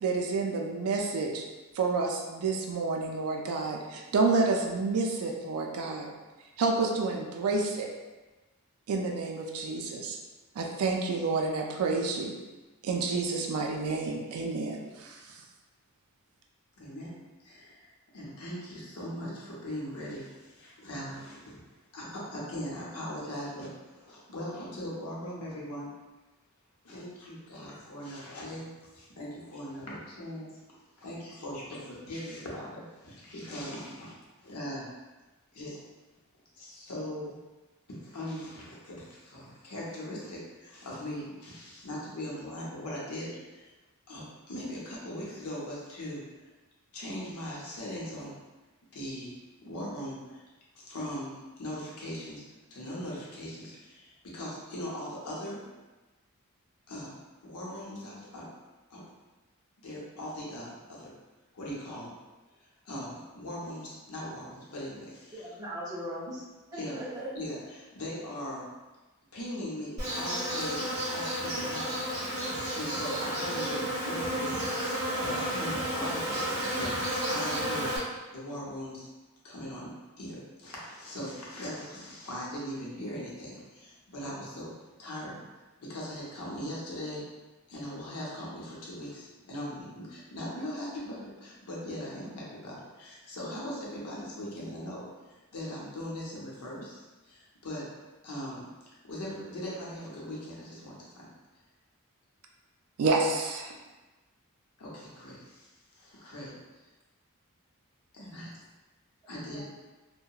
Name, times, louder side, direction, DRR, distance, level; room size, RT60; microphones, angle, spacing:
voice 1, 0.0-1.4 1.8-6.1 6.6-7.9 8.9-10.2 10.6-12.3 12.8-15.2 103.0-103.7, right 3 dB, 85° right, 1 dB, 0.4 m, -29 dB
voice 2, 16.8-17.1 17.4-17.9 18.1-25.9 26.8-30.5 31.0-34.9 35.5-35.8 36.5-37.4 37.9-43.7 44.1-46.2 46.9-48.3 48.9-49.4 49.6-50.4 50.7-55.6 56.9-57.2 57.4-58.5 58.9-59.0 59.8-61.1 61.5-62.1 62.8-65.5 66.7-67.0 67.3-68.7 69.3-72.0 72.7-74.5 74.8-76.9 77.3-77.9 78.3-79.1 79.4-79.9 80.2-84.7 85.0-85.4 85.8-87.2 87.7-95.0 95.5-97.9 98.2-98.7 99.0-101.3 104.8-106.5 108.1-108.5 109.3-109.6, equal, 90° left, -5 dB, 0.8 m, -40 dB
voice 3, 65.3-66.4 66.7-67.3 109.5-109.6, equal, 15° right, -6 dB, 0.5 m, -38 dB
Insect, 70.0-78.0, equal, 35° right, 0.9 m, -32 dB
2.8 x 2.1 x 2.3 m, 1.2 s
head